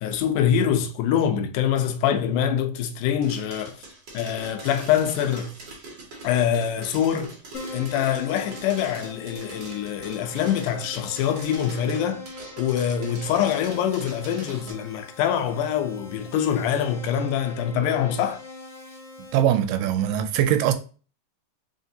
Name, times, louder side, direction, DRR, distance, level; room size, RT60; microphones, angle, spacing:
voice 1, 0.0-3.8 4.1-5.6 6.2-7.3 7.7-12.2 12.6-18.4, left 9 dB, 80° left, 1.9 m, -24 dB
sound 1, 3.2-14.7, right 2 dB, 55° right, 1.2 m, -42 dB
Keyboard (musical), 7.5-19.4, left 3 dB, 60° left, 1.3 m, -42 dB
voice 2, 19.3-20.7, right 10 dB, 90° right, 2.2 m, -21 dB
5.0 x 2.9 x 2.7 m
omnidirectional pair, 3.8 m